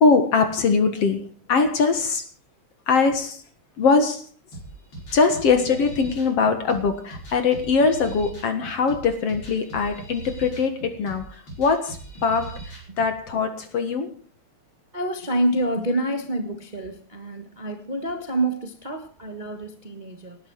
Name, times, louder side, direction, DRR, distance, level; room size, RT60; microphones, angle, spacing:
voice 1, 0.0-2.2 2.9-3.4 3.8-4.2 5.1-14.2, left 4 dB, 55° left, 2.5 m, -22 dB
sound 1, 4.5-13.1, right 2 dB, 40° left, 5.8 m, -40 dB
voice 2, 14.9-20.4, right 1 dB, 40° right, 0.6 m, -27 dB
19.0 x 11.0 x 4.7 m
omnidirectional pair, 3.5 m